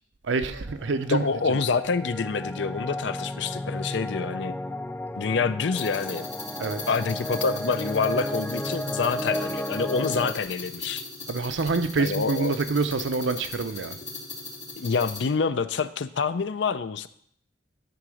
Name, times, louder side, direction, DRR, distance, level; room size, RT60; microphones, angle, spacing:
voice 1, 0.2-1.2 1.5-1.6 6.6-6.8 11.3-13.9, right 4 dB, 85° right, 10 dB, 0.6 m, -26 dB
sound 1, 0.7-10.3, left 1 dB, 10° left, 0.3 m, -33 dB
voice 2, 1.1-4.6 5.2-6.3 6.7-11.0 12.0-12.6 14.8-17.1, left 5 dB, 70° left, 14 dB, 0.5 m, -27 dB
sound 2, 5.8-15.2, left 3 dB, 35° left, 2.5 m, -39 dB
10.5 x 3.8 x 6.3 m, 0.64 s
head